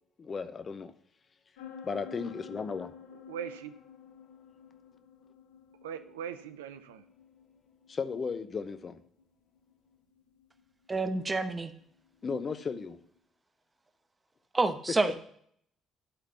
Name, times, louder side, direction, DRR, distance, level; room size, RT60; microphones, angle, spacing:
voice 1, 0.2-0.9 1.8-2.9 7.9-9.0 12.2-13.0, left 5 dB, 40° left, 10 dB, 0.8 m, -35 dB
sound 1, 1.6-13.1, left 7 dB, 80° left, 0.9 m, -52 dB
voice 2, 3.3-3.7 5.8-7.0, right 8 dB, 85° right, 10 dB, 0.4 m, -40 dB
voice 3, 10.9-11.7 14.5-15.2, right 3 dB, 25° right, 9 dB, 1.0 m, -28 dB
11.0 x 4.0 x 5.5 m, 0.65 s
hypercardioid pair, 50°, 0 cm